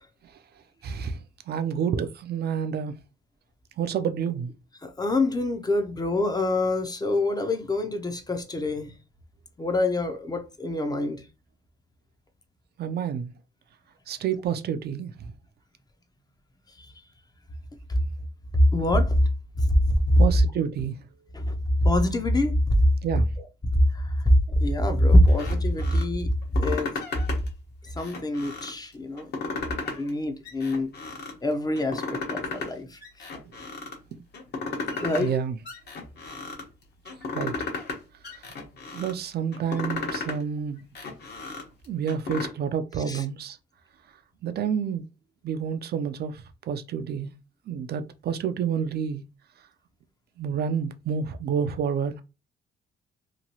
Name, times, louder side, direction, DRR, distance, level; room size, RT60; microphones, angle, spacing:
voice 1, 0.8-1.2 1.5-3.0 3.8-4.5 12.8-13.3 14.1-15.1 20.2-20.9 23.0-23.3 35.2-35.6 37.3-37.5 38.9-40.8 41.9-43.6 44.4-45.0 45.4-47.3 47.7-49.2 50.4-52.2, right 7 dB, 55° right, 0.4 m, -29 dB
voice 2, 4.8-8.9 9.6-11.2 16.8-16.9 18.5-19.2 19.6-20.2 21.3-22.8 23.7-26.9 27.9-29.3 30.0-30.9 31.4-33.0 34.9-35.3 43.1-43.2, left 1 dB, 20° left, 0.5 m, -24 dB
sound 1, 25.3-26.0 26.4-27.5 27.9-28.8 29.2-30.1 30.4-31.3 31.8-32.7 33.0-34.0 34.3-35.3 35.6-36.6 37.0-38.0 38.2-39.1 39.5-40.4 40.8-42.5, left 3 dB, 55° left, 1.1 m, -34 dB
2.9 x 2.3 x 2.8 m
cardioid pair, 90°, 20 cm